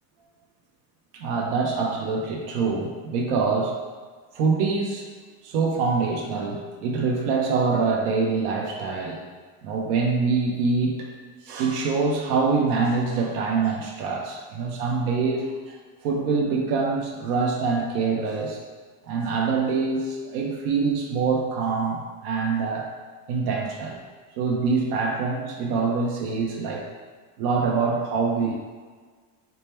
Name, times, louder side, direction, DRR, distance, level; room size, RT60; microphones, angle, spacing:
voice 1, 1.1-3.8 4.3-5.0 5.4-9.2 9.6-11.1 11.4-15.8 16.0-18.6 19.1-22.9 23.3-24.0 24.4-26.8 27.4-28.6, right 4 dB, 80° right, 0 dB, 0.7 m, -25 dB
3.4 x 2.1 x 4.2 m, 1.5 s
cardioid pair, 145°, 44 cm